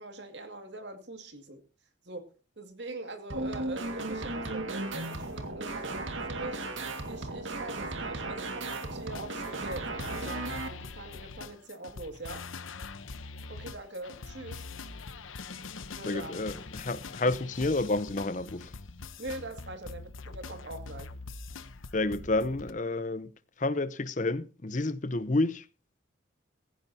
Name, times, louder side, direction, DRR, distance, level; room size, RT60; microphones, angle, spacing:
voice 1, 0.0-1.6 2.0-2.3 2.6-6.6 7.1-12.4 13.5-14.6 15.9-16.3 19.2-21.1, right 2 dB, 60° right, 2.3 m, -42 dB
sound 1, 3.3-10.7, right 2 dB, 75° right, 2.0 m, -36 dB
sound 2, 9.1-22.7, left 4 dB, 90° left, 1.0 m, -43 dB
voice 2, 16.1-18.7 21.9-23.3 23.6-25.6, left 2 dB, 40° left, 0.8 m, -30 dB
17.0 x 15.5 x 2.8 m
head